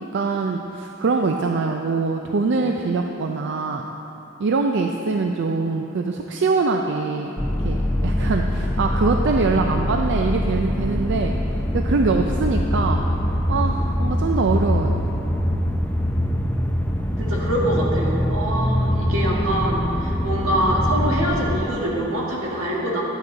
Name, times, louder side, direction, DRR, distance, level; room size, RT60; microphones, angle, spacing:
voice 1, 0.1-3.9 4.4-7.3 7.6-11.4 11.7-13.0 13.5-15.1, right 4 dB, 60° right, 3 dB, 0.4 m, -23 dB
sound 1, 7.4-21.6, equal, 10° left, 0.4 m, -23 dB
voice 2, 17.2-23.0, right 1 dB, 85° right, -3 dB, 1.8 m, -24 dB
11.5 x 7.5 x 3.9 m, 3.0 s
head